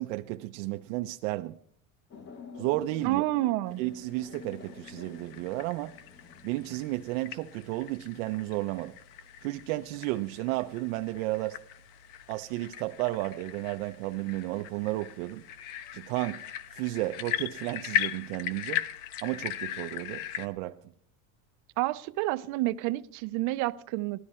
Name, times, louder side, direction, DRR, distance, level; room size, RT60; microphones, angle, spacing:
voice 1, 0.0-1.6 2.6-3.2 3.8-5.9 6.4-9.0 9.4-11.6 12.3-15.4 15.9-18.8 19.2-20.8, right 18 dB, 80° right, 0.7 m, -33 dB
sound 1, 2.1-8.1 11.0-11.4, left 5 dB, 25° left, 1.0 m, -49 dB
voice 2, 3.0-3.8 21.8-24.2, right 18 dB, 50° right, 0.5 m, -29 dB
sound 2, 4.0-20.5, left 10 dB, 85° left, 1.2 m, -39 dB
18.0 x 13.0 x 4.3 m
cardioid pair, 170°, 39 cm